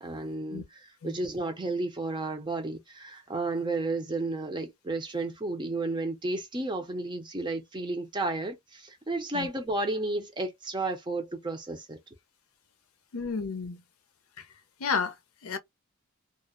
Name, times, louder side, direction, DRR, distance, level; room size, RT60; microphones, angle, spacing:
voice 1, 0.0-12.0, right 2 dB, 20° right, 0.5 m, -32 dB
voice 2, 13.1-13.8 14.4-14.5 14.8-15.1 15.4-15.6, left 5 dB, 85° left, 0.6 m, -31 dB
2.3 x 2.0 x 2.5 m
head